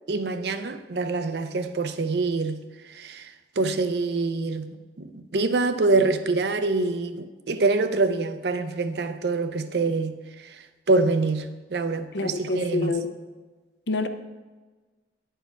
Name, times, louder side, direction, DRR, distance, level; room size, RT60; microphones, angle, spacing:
voice 1, 0.1-2.6 2.9-10.6 10.9-12.9, right 3 dB, 70° right, 9 dB, 0.5 m, -25 dB
voice 2, 12.1-13.1 13.9-14.1, left 3 dB, 80° left, 9 dB, 0.6 m, -26 dB
9.8 x 4.6 x 4.6 m, 1.3 s
head